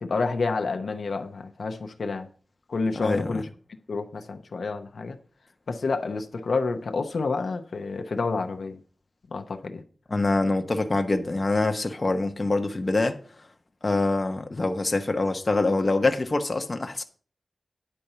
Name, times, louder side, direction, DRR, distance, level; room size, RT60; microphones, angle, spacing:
voice 1, 0.0-2.3 2.7-3.4 3.9-5.2 5.7-8.8 9.3-9.8, left 4 dB, 80° left, 0.8 m, -29 dB
voice 2, 3.0-3.3 10.1-13.2 13.8-17.0, left 2 dB, 35° left, 0.9 m, -25 dB
9.9 x 4.3 x 6.7 m
wide cardioid pair, 110°, 0 cm